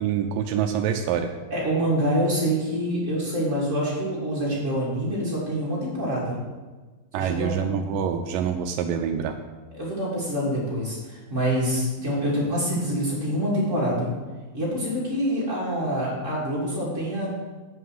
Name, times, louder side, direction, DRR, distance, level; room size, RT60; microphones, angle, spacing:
voice 1, 0.0-1.3 7.1-9.4, right 8 dB, 80° right, 6 dB, 2.1 m, -26 dB
voice 2, 1.5-6.4 7.2-7.5 9.7-14.1 14.5-17.3, equal, 25° right, -6 dB, 2.2 m, -26 dB
7.5 x 5.5 x 7.6 m, 1.3 s
omnidirectional pair, 4.3 m